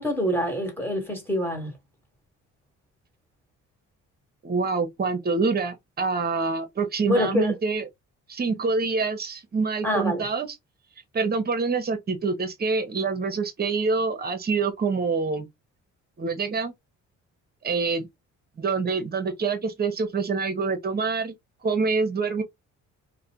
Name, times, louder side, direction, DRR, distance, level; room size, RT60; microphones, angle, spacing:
voice 1, 0.0-1.7 7.0-7.5 9.8-10.2, equal, 5° left, 1.3 m, -26 dB
voice 2, 4.4-7.9 8.3-10.6 11.1-15.5 16.2-16.7 17.6-18.1 18.6-21.3 21.6-22.4, right 4 dB, 30° right, 0.7 m, -26 dB
2.3 x 2.1 x 2.9 m
cardioid pair, 90°, 30 cm